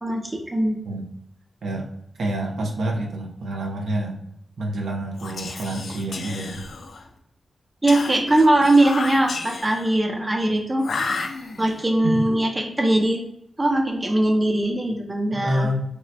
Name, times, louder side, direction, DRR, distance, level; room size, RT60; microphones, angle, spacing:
voice 1, 0.0-0.8 7.8-10.8 11.6-13.2 13.6-15.7, right 1 dB, 20° right, 2 dB, 0.6 m, -20 dB
voice 2, 2.2-4.2 4.6-6.7 12.0-12.2 15.3-15.8, right 1 dB, 75° right, 1 dB, 0.6 m, -27 dB
Whispering, 5.1-7.1 7.9-9.9 10.8-11.8, left 4 dB, 65° left, 0.4 m, -32 dB
2.9 x 2.1 x 4.0 m, 0.75 s
wide cardioid pair, 135°, 0 cm